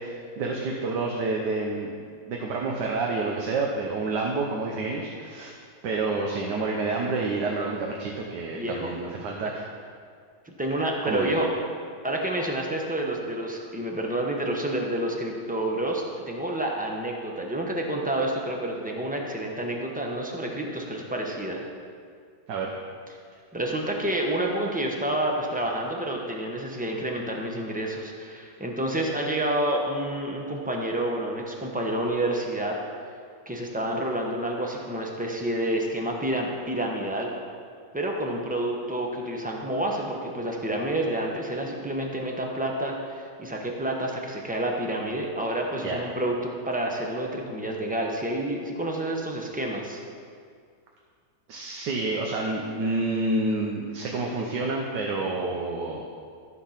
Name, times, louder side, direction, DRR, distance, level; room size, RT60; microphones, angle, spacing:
voice 1, 0.0-1.9 2.3-5.5 5.8-9.6 11.0-11.3 22.5-22.7 45.8-46.0 51.5-56.0, right 3 dB, 85° right, 0 dB, 1.5 m, -28 dB
voice 2, 8.5-8.9 10.5-11.5 12.0-21.6 23.5-32.8 33.5-37.3 37.9-46.3 46.7-50.0, right 1 dB, 5° right, 0 dB, 0.7 m, -29 dB
13.5 x 4.7 x 5.7 m, 2.2 s
omnidirectional pair, 1.8 m